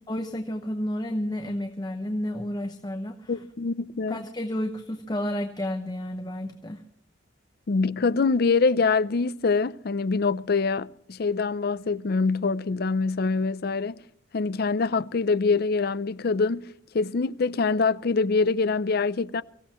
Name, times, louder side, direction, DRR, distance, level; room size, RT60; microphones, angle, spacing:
voice 1, 0.1-3.3 4.1-6.8, left 1 dB, 20° left, 0.9 m, -31 dB
voice 2, 3.3-4.2 7.7-14.0 14.3-16.7 16.9-19.4, left 4 dB, 55° left, 0.5 m, -24 dB
24.0 x 15.0 x 3.0 m
head